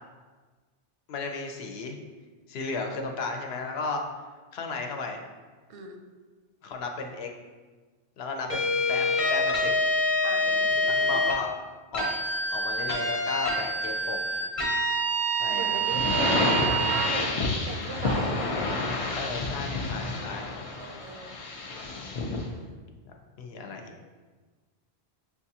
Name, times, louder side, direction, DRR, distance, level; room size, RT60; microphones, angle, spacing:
voice 1, 1.1-2.0 2.5-4.0 4.5-5.2 6.6-7.3 8.2-9.7 10.5-11.5 11.9-12.1 12.5-14.2 15.4-15.8 19.1-20.5 23.1-23.9, left 4 dB, 75° left, 3 dB, 0.8 m, -34 dB
sound 1, 8.5-11.4 11.9-17.1, equal, 35° left, 0.8 m, -26 dB
voice 2, 10.2-11.3 15.5-18.3 20.8-21.4, right 4 dB, 85° right, 3 dB, 0.9 m, -38 dB
sound 2, 15.8-22.5, left 3 dB, 55° left, 0.3 m, -29 dB
6.7 x 2.3 x 2.7 m, 1.4 s
omnidirectional pair, 1.1 m